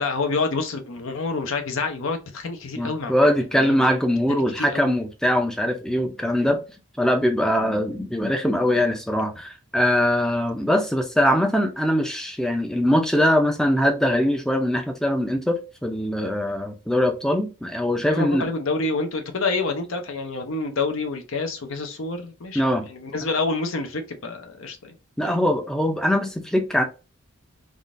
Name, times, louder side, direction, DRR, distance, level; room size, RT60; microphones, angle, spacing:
voice 1, 0.0-3.1 3.5-3.8 4.3-4.9 18.1-25.0 25.2-25.3, left 3 dB, 70° left, 0.7 m, -28 dB
voice 2, 2.8-6.6 7.0-18.5 22.5-22.9 25.2-26.8, equal, 5° left, 0.4 m, -22 dB
3.6 x 2.4 x 2.4 m
head